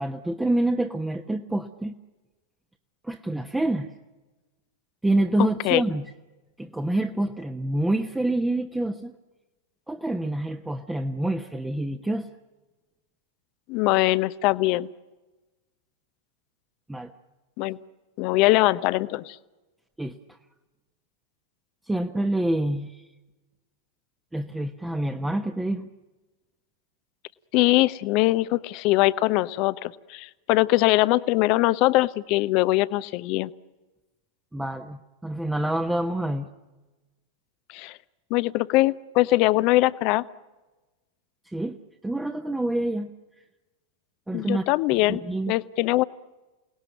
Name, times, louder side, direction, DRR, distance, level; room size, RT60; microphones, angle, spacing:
voice 1, 0.0-1.9 3.0-3.9 5.0-6.0 6.6-9.1 9.9-12.3 16.9-17.1 20.0-20.2 21.9-23.0 24.3-25.9 34.5-36.5 41.4-41.8 42.0-43.1 44.3-44.7 45.1-45.5, right 1 dB, 5° right, 5 dB, 1.1 m, -27 dB
voice 2, 13.7-14.9 17.6-17.8 18.2-19.4 27.5-33.5 37.7-38.0 38.3-40.2 44.3-45.2 45.5-46.0, left 18 dB, 45° left, 17 dB, 0.8 m, -22 dB
28.5 x 19.0 x 9.2 m, 1.2 s
figure-of-eight pair, 90°, 0 cm